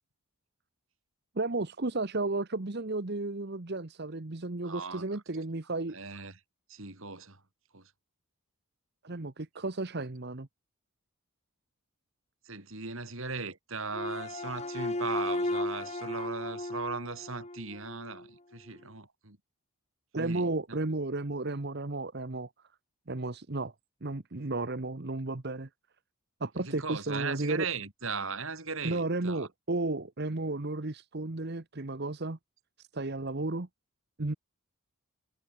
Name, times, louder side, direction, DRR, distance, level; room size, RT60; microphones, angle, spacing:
voice 1, 1.3-6.0 9.0-10.5 20.1-22.5 23.1-23.7 24.0-25.7 26.4-27.7 28.8-32.4 32.8-33.7 34.2-34.3, right 2 dB, 50° right, 1.1 m, -33 dB
voice 2, 4.6-5.0 5.9-6.4 6.7-7.4 7.7-7.9 12.5-19.4 20.2-20.5 26.6-29.5, right 4 dB, 65° right, 3.8 m, -38 dB
sound 1, 13.9-18.2, left 1 dB, 30° left, 2.0 m, -35 dB
head